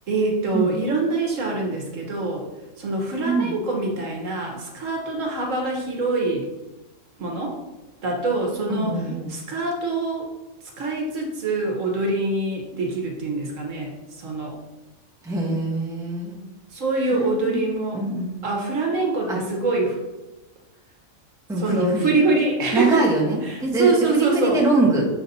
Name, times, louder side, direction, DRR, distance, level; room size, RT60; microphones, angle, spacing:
voice 1, 0.1-2.5 2.8-6.5 7.2-7.6 8.0-9.0 9.3-10.3 10.8-14.6 16.7-18.0 18.4-20.0 21.6-23.0 23.4-24.6, right 3 dB, 65° right, 1 dB, 1.4 m, -24 dB
voice 2, 3.2-3.6 8.7-9.3 15.2-16.4 17.2-17.6 17.9-18.4 19.3-19.4 21.5-22.1 22.7-25.1, right 2 dB, 5° right, -4 dB, 1.1 m, -23 dB
6.7 x 4.0 x 4.1 m, 1.1 s
omnidirectional pair, 1.5 m